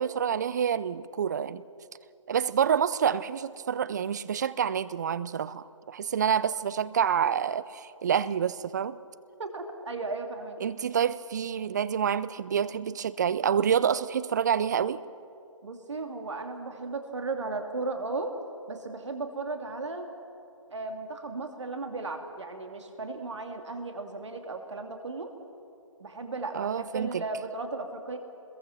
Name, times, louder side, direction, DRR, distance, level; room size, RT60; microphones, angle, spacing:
voice 1, 0.0-1.6 2.3-9.0 10.6-15.0 26.5-27.2, right 8 dB, 35° right, 17 dB, 0.5 m, -27 dB
voice 2, 9.4-10.6 15.6-18.3 18.7-20.1 20.7-25.3 26.0-28.2, right 3 dB, 60° right, 5 dB, 2.7 m, -35 dB
26.0 x 21.5 x 6.0 m, 2.6 s
figure-of-eight pair, 145°, 17 cm